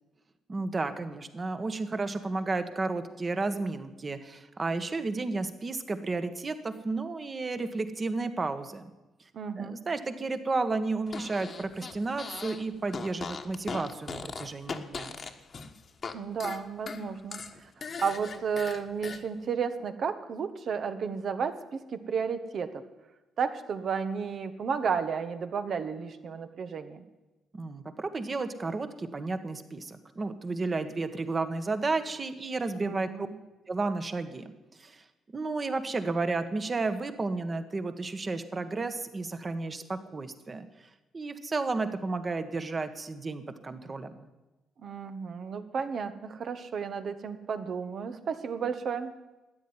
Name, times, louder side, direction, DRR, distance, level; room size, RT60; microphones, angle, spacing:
voice 1, 0.5-8.8 9.6-15.2 27.5-33.3 33.7-34.4 34.8-35.0 35.3-40.7 41.1-44.3, right 3 dB, 30° right, 9 dB, 1.5 m, -32 dB
voice 2, 9.3-9.8 16.1-17.7 18.0-22.8 23.4-27.0 32.8-33.3 44.8-49.1, right 6 dB, 55° right, 9 dB, 1.3 m, -33 dB
Fart, 11.1-12.6 12.9-16.1 16.4-19.2, left 5 dB, 45° left, 1.4 m, -39 dB
13.0 x 9.5 x 9.8 m, 1.1 s
cardioid pair, 90°, 0 cm